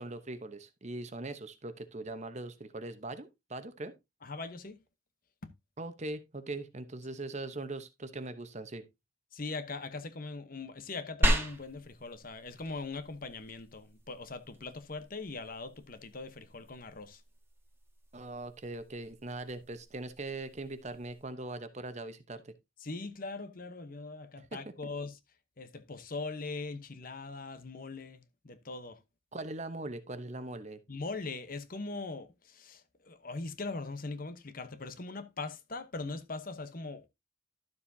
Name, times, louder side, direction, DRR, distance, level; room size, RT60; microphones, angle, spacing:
voice 1, 0.0-3.9 5.8-8.8 18.1-22.5 24.4-24.7 29.3-30.8, right 2 dB, 35° right, 1.0 m, -41 dB
voice 2, 4.2-4.8 9.3-17.2 22.8-25.1 25.6-29.0 30.9-37.1, left 3 dB, 45° left, 1.0 m, -41 dB
sound 1, 11.2-21.2, right 1 dB, 10° right, 1.7 m, -37 dB
12.0 x 7.2 x 2.7 m
head